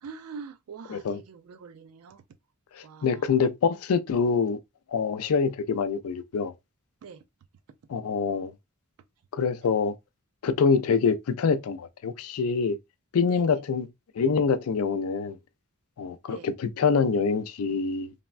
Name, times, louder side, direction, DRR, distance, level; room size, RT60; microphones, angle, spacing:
voice 1, 0.0-2.2 2.8-3.4 7.0-7.2 13.3-13.6 16.3-16.5, right 5 dB, 85° right, 0.4 m, -44 dB
voice 2, 2.8-4.6 4.9-6.5 7.9-8.5 9.3-9.9 10.4-12.8 13.1-13.9 14.2-15.4 16.0-18.1, left 5 dB, 85° left, 0.4 m, -25 dB
3.3 x 2.1 x 2.3 m
head